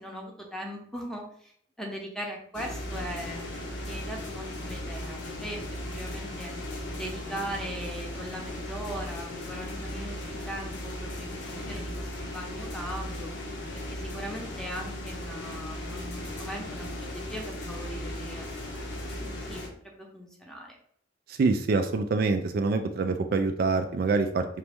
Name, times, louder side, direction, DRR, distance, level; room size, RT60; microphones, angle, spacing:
voice 1, 0.0-1.5 1.8-5.6 5.9-6.5 6.9-13.3 13.9-20.8, equal, 5° left, 0 dB, 0.8 m, -40 dB
sound 1, 2.5-19.7, left 1 dB, 65° left, 0.9 m, -37 dB
voice 2, 21.3-24.5, right 4 dB, 50° right, 7 dB, 0.3 m, -25 dB
4.1 x 3.0 x 3.4 m, 0.63 s
head